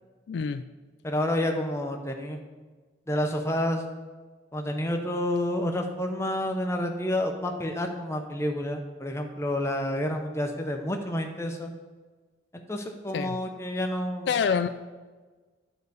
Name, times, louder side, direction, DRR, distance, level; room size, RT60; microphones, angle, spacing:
voice 1, 0.3-0.6 13.1-13.4 14.3-14.7, left 6 dB, 65° left, 10 dB, 0.3 m, -26 dB
voice 2, 1.0-2.4 3.1-3.8 4.5-11.7 12.5-14.3, left 1 dB, 15° left, 3 dB, 0.7 m, -29 dB
10.5 x 4.0 x 6.8 m, 1.3 s
head